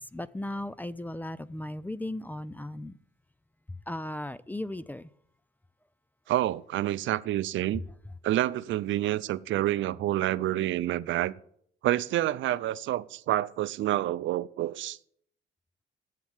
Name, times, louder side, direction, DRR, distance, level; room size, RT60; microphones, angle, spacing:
voice 1, 0.1-3.0 3.9-5.1, left 1 dB, 10° left, 0.4 m, -36 dB
voice 2, 6.3-7.8 8.2-11.3 11.8-15.0, right 14 dB, 75° right, 0.5 m, -28 dB
7.8 x 7.3 x 7.1 m
cardioid pair, 90°, 20 cm